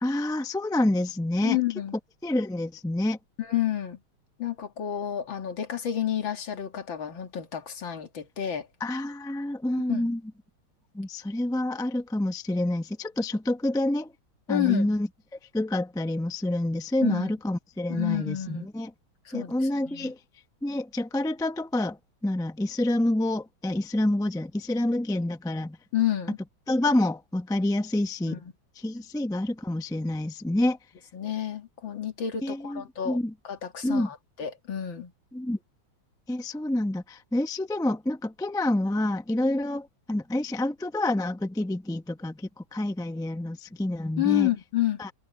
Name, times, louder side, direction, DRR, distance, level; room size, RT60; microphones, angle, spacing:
voice 1, 0.0-1.6 2.2-3.2 8.8-10.2 10.9-14.1 14.5-15.1 15.5-18.9 19.3-20.2 20.6-25.8 26.7-28.4 28.8-30.8 32.4-33.3 33.8-34.1 35.3-35.6 36.3-44.5 45.0-45.1, left 1 dB, 5° left, 0.3 m, -28 dB
voice 2, 1.4-2.0 3.4-4.0 4.4-8.7 9.9-10.1 14.5-14.9 17.0-17.3 17.9-18.7 19.3-19.5 19.9-20.1 25.9-26.4 28.3-28.5 31.1-33.2 33.4-35.1 44.2-45.0, left 12 dB, 70° left, 2.4 m, -29 dB
omnidirectional pair, 2.2 m